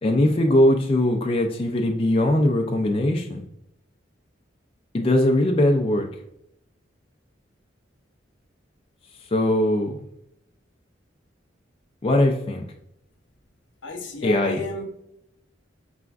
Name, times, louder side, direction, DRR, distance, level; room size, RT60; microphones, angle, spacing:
voice 1, 0.0-3.4 4.9-6.1 9.3-10.0 12.0-12.6 14.2-14.6, left 1 dB, 30° left, 2 dB, 0.4 m, -20 dB
voice 2, 13.8-14.8, left 2 dB, 80° left, 3 dB, 0.9 m, -32 dB
5.0 x 3.3 x 2.3 m, 0.78 s
head